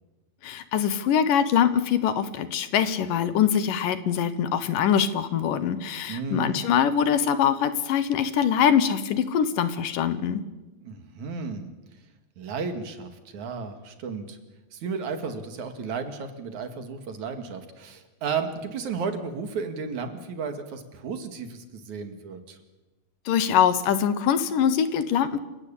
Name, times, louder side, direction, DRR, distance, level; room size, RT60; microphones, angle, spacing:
voice 1, 0.4-10.4 23.3-25.4, left 8 dB, 70° left, 13 dB, 2.7 m, -23 dB
voice 2, 6.1-6.6 10.8-11.7 12.4-14.4 14.7-22.6, right 5 dB, 60° right, 7 dB, 3.2 m, -33 dB
28.0 x 17.0 x 8.6 m, 1.1 s
omnidirectional pair, 4.1 m